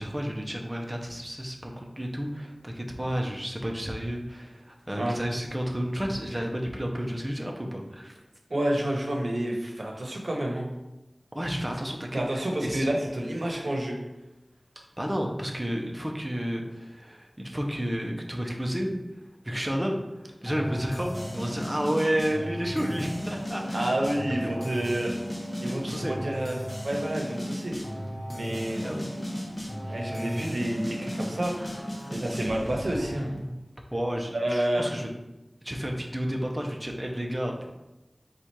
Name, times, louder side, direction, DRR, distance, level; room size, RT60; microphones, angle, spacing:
voice 1, 0.0-8.2 11.3-12.9 15.0-19.0 19.4-23.9 24.4-24.7 25.7-26.2 28.8-29.0 29.9-30.2 31.6-31.7 32.0-32.1 33.9-35.1 35.6-37.7, equal, 20° right, 1 dB, 0.7 m, -31 dB
voice 2, 8.5-10.7 12.1-14.0 23.7-25.1 25.6-26.6 26.8-27.8 28.3-28.9 29.9-31.5 32.1-33.3 34.3-34.9, right 1 dB, 80° right, -1 dB, 0.9 m, -29 dB
sound 1, 20.5-33.4, equal, 30° left, 1.1 m, -35 dB
4.2 x 2.4 x 4.5 m, 0.98 s
wide cardioid pair, 55°, 0 cm